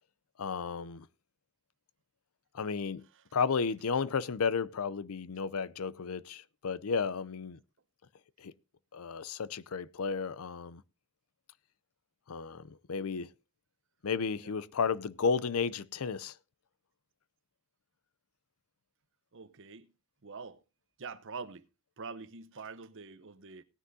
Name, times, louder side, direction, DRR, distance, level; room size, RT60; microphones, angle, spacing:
voice 1, 0.4-1.1 2.5-3.0 3.3-7.6 8.4-8.5 8.9-10.8 12.3-13.3 14.0-16.3, left 5 dB, 70° left, 0.6 m, -33 dB
voice 2, 19.3-19.9 20.2-20.6 21.0-21.6 22.0-23.6, right 4 dB, 60° right, 0.9 m, -45 dB
18.0 x 9.8 x 2.7 m
head